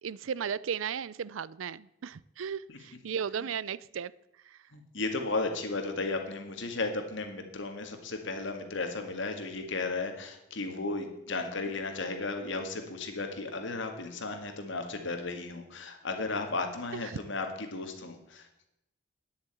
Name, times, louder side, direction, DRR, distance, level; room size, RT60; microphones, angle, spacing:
voice 1, 0.0-4.1 4.4-4.6 16.9-17.2, right 7 dB, 75° right, 21 dB, 0.4 m, -35 dB
voice 2, 4.7-18.7, left 3 dB, 65° left, 5 dB, 1.9 m, -35 dB
9.8 x 7.3 x 8.9 m, 0.84 s
head